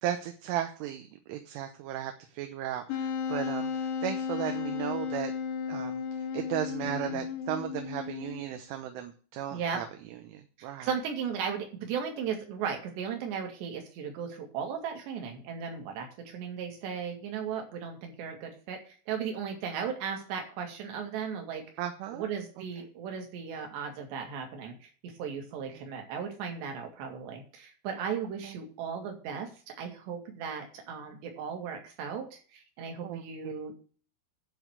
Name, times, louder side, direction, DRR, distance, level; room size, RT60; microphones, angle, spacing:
voice 1, 0.0-5.3 5.7-10.9 21.8-22.2 25.7-25.8 28.4-28.6 33.0-33.5, right 11 dB, 80° right, 6 dB, 3.3 m, -36 dB
Wind instrument woodwind instrument, 2.9-8.6, left 6 dB, 85° left, 3.8 m, -34 dB
voice 2, 6.8-7.2 9.5-9.8 10.6-21.6 22.1-29.5 29.8-33.7, right 7 dB, 60° right, 3 dB, 4.0 m, -36 dB
12.0 x 4.1 x 7.9 m, 0.40 s
omnidirectional pair, 5.8 m